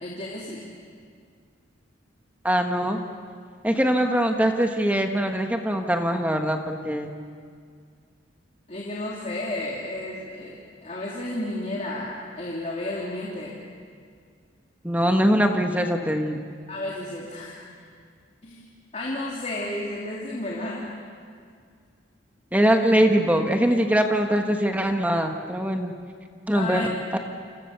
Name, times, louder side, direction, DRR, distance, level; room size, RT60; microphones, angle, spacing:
voice 1, 0.0-0.7 8.7-13.6 16.7-17.6 18.4-20.9 26.5-26.8, left 1 dB, 35° left, -5 dB, 3.3 m, -32 dB
voice 2, 2.4-3.0 3.6-7.1 14.8-16.4 22.5-25.9 26.5-27.2, equal, 10° right, 4 dB, 1.3 m, -22 dB
29.5 x 27.5 x 6.8 m, 2.1 s
head